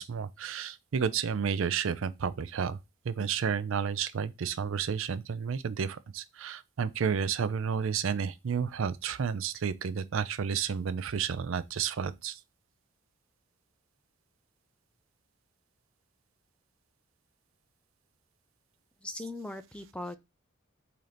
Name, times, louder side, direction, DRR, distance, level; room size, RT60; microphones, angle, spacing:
voice 1, 0.0-2.8 3.0-12.4, right 6 dB, 70° right, 0.4 m, -31 dB
voice 2, 19.0-20.2, left 2 dB, 5° left, 0.4 m, -39 dB
3.8 x 2.9 x 4.9 m
head